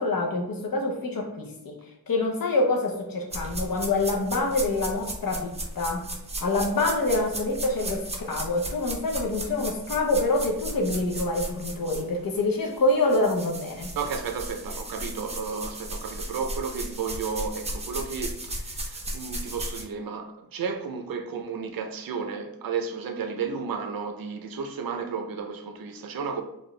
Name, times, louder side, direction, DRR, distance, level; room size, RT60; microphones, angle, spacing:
voice 1, 0.0-1.8 2.1-6.1 6.4-13.9, left 2 dB, 70° left, 0.8 m, -26 dB
sound 1, 3.3-12.4 12.7-19.8, right 1 dB, 20° right, 0.5 m, -36 dB
voice 2, 14.0-26.4, right 5 dB, 70° right, 0.6 m, -33 dB
4.3 x 2.4 x 3.1 m
wide cardioid pair, 140°, 36 cm